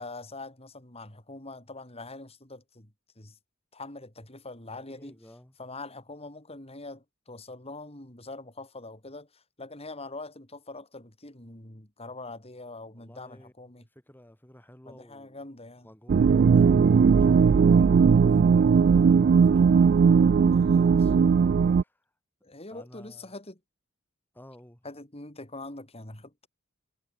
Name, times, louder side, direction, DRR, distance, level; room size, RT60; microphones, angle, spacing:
voice 1, 0.0-3.4 3.7-5.2 5.6-13.8 14.9-15.9 20.7-21.0 22.4-23.6 24.8-26.5, left 2 dB, 30° left, 4.6 m, -43 dB
voice 2, 4.7-5.6 13.0-15.4 15.8-21.2 21.5-22.0 22.7-23.4 24.3-24.8, equal, 10° left, 3.8 m, -53 dB
sound 1, 16.1-21.8, right 6 dB, 45° right, 0.3 m, -19 dB
head